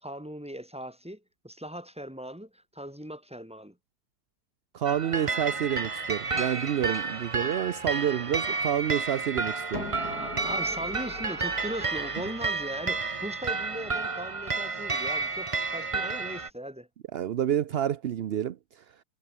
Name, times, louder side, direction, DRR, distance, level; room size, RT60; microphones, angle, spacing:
voice 1, 0.0-3.7 10.0-16.9, equal, 5° right, 3.8 m, -39 dB
voice 2, 4.7-9.8 17.1-18.6, right 10 dB, 65° right, 0.6 m, -28 dB
sound 1, 4.9-16.5, right 4 dB, 25° right, 0.9 m, -31 dB
sound 2, 9.7-15.3, left 2 dB, 70° left, 5.7 m, -43 dB
omnidirectional pair, 1.7 m